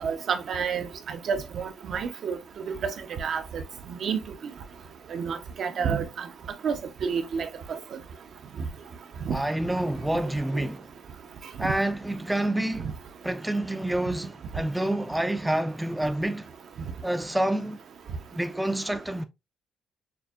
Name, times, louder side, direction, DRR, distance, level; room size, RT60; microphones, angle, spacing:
voice 1, 0.0-2.4 2.8-2.9 3.2-3.4 3.9-4.2 5.1-6.3 6.6-6.8 7.0-7.5 9.2-9.4 11.6-11.7, right 6 dB, 50° right, 0.7 m, -29 dB
voice 2, 9.3-10.9 11.6-12.9 13.2-16.5 17.0-17.8 18.3-19.2, right 1 dB, 5° right, 0.4 m, -28 dB
6.8 x 2.7 x 2.3 m
cardioid pair, 150°, 0 cm